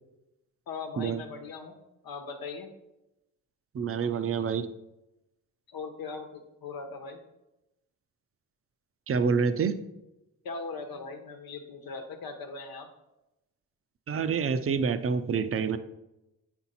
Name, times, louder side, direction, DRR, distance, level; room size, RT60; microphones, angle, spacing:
voice 1, 0.7-1.8 2.0-2.7 5.7-7.2 10.4-12.9, left 4 dB, 85° left, 5 dB, 1.1 m, -39 dB
voice 2, 3.7-4.7 9.1-9.8 14.1-15.8, right 6 dB, 40° right, 12 dB, 0.6 m, -27 dB
8.6 x 4.4 x 4.2 m, 0.93 s
cardioid pair, 60°, 35 cm